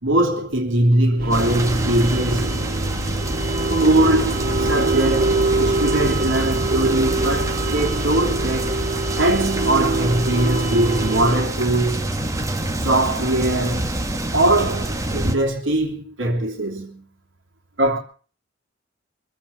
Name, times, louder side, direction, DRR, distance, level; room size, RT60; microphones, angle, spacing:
voice 1, 0.0-2.6 3.8-8.8 9.2-12.1 12.8-14.0 14.3-17.0 17.8-18.0, right 1 dB, 75° right, 3.1 m, -21 dB
sound 1, 1.2-11.4, right 2 dB, 50° right, 3.0 m, -24 dB
sound 2, 1.3-15.3, right 1 dB, 15° right, 1.6 m, -27 dB
24.5 x 8.5 x 7.0 m
head